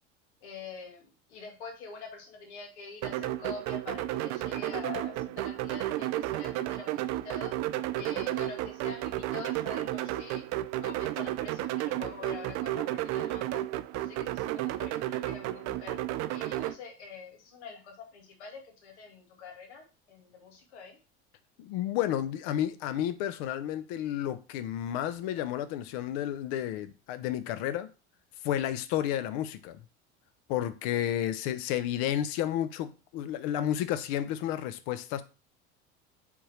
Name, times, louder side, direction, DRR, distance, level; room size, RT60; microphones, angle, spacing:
voice 1, 0.4-7.5 7.9-10.4 10.8-13.6 13.9-16.0 16.3-21.0, left 5 dB, 85° left, 1.7 m, -45 dB
sound 1, 3.0-16.7, right 15 dB, 50° right, 0.5 m, -32 dB
voice 2, 21.6-27.9 28.4-29.8 30.5-35.2, left 11 dB, 70° left, 0.7 m, -31 dB
4.7 x 3.5 x 3.2 m
hypercardioid pair, 90°, 33 cm